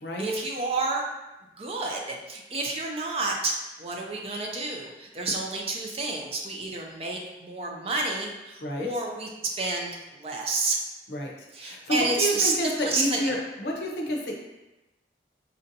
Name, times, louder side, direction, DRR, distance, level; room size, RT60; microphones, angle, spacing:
voice 1, 0.2-1.0 1.6-10.8 11.5-13.4, right 3 dB, 35° right, 0 dB, 0.4 m, -30 dB
voice 2, 11.6-14.3, equal, 70° left, 0 dB, 0.6 m, -29 dB
4.3 x 2.6 x 2.6 m, 1.0 s
head